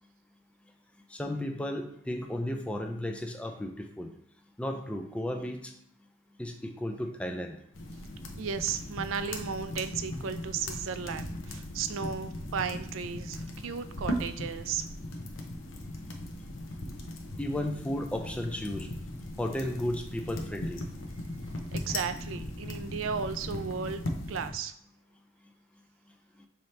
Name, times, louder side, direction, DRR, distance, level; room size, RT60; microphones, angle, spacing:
voice 1, 1.1-4.1 4.6-5.7 6.4-7.6 17.4-18.9 19.4-20.8, left 1 dB, 5° left, 3 dB, 0.4 m, -34 dB
sound 1, 7.7-24.5, left 1 dB, 75° left, 0.7 m, -38 dB
voice 2, 8.4-14.9 21.7-24.0 24.3-24.7, right 6 dB, 85° right, 10 dB, 0.4 m, -35 dB
5.5 x 2.9 x 3.2 m, 0.70 s
head